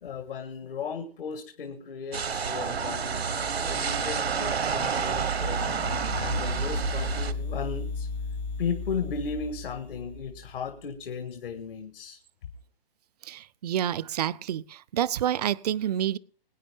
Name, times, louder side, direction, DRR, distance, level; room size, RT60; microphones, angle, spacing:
voice 1, 0.0-5.8 6.1-8.1 8.6-12.2, left 5 dB, 60° left, 1.6 m, -36 dB
sound 1, 2.1-7.3, right 6 dB, 85° right, 1.2 m, -29 dB
sound 2, 3.2-10.8, left 4 dB, 20° left, 0.5 m, -37 dB
voice 2, 13.3-14.6 14.9-16.2, right 11 dB, 40° right, 0.5 m, -28 dB
21.5 x 9.4 x 3.5 m
hypercardioid pair, 135°, 30 cm